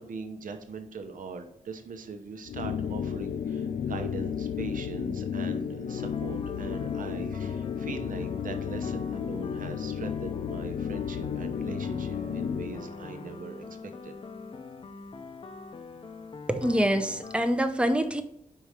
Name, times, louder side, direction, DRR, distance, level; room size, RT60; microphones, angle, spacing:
voice 1, 0.0-14.2, right 4 dB, 75° right, 6 dB, 0.8 m, -41 dB
sound 1, 2.5-12.9, left 7 dB, 90° left, 0.4 m, -33 dB
sound 2, 5.9-17.4, left 4 dB, 40° left, 0.5 m, -43 dB
voice 2, 16.5-18.2, equal, 10° right, 8 dB, 0.5 m, -25 dB
5.5 x 4.7 x 4.9 m, 0.76 s
wide cardioid pair, 165°, 14 cm